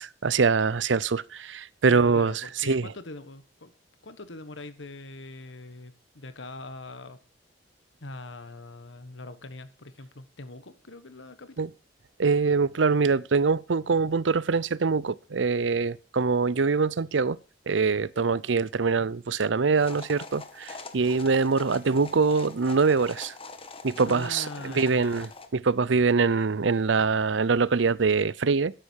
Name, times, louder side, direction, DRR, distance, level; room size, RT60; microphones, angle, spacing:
voice 1, 0.0-2.3 2.6-2.9 11.6-11.7 12.2-17.4 17.7-23.3 23.8-28.7, right 4 dB, 80° right, 0.6 m, -24 dB
voice 2, 1.9-3.7 4.0-7.2 8.0-11.6 24.1-25.2, left 2 dB, 85° left, 1.5 m, -42 dB
sound 1, 19.8-25.5, left 3 dB, 30° left, 1.5 m, -43 dB
13.0 x 10.0 x 4.7 m
head